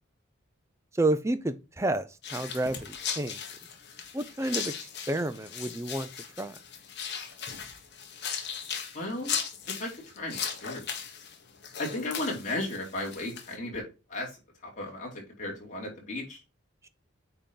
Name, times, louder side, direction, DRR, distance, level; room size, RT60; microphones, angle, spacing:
voice 1, 0.9-3.4 4.1-6.1 6.4-6.6 16.8-16.9, right 2 dB, 15° right, 0.5 m, -30 dB
sound 1, 2.2-13.6, left 7 dB, 55° left, 1.3 m, -38 dB
voice 2, 8.9-9.3 9.8-9.9 10.2-10.8 11.8-13.8 14.1-14.3 14.6-16.4, left 2 dB, 35° left, 2.8 m, -35 dB
8.7 x 3.0 x 5.4 m
head